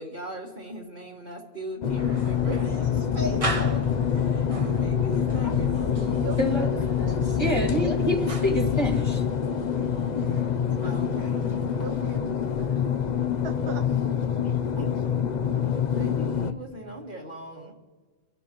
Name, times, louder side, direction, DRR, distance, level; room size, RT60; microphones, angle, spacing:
voice 1, 0.0-6.3 10.8-11.4 14.4-14.9 15.9-17.7, right 1 dB, 50° right, -4 dB, 1.9 m, -38 dB
sound 1, 1.8-16.5, left 8 dB, 50° left, 0.7 m, -26 dB
sound 2, 2.0-12.2, right 2 dB, 35° right, 1.1 m, -39 dB
voice 2, 6.2-7.2 11.8-12.8 13.4-13.9, right 7 dB, 70° right, 6 dB, 1.0 m, -39 dB
voice 3, 7.3-9.2, equal, 25° left, -2 dB, 2.3 m, -27 dB
25.5 x 11.5 x 3.0 m, 1.3 s
omnidirectional pair, 1.1 m